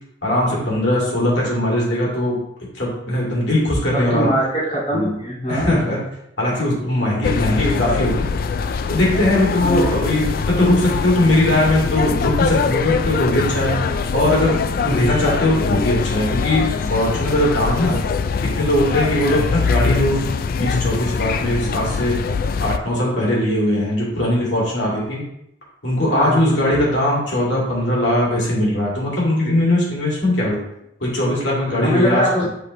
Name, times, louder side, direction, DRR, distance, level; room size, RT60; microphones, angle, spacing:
voice 1, 0.2-2.4 2.7-4.3 4.9-5.2 5.5-6.0 6.4-8.3 8.9-13.7 14.1-14.5 14.8-18.0 18.4-20.2 20.6-22.2 22.6-25.2 25.8-30.6 31.0-32.3, left 1 dB, 75° left, -6 dB, 2.4 m, -20 dB
voice 2, 3.9-5.9 9.6-10.0 14.8-15.1 19.2-19.4 26.1-26.6 31.8-32.5, equal, 30° left, -8 dB, 2.3 m, -22 dB
sound 1, 7.2-22.8, left 5 dB, 50° left, 0.3 m, -23 dB
7.8 x 4.3 x 3.2 m, 0.81 s
head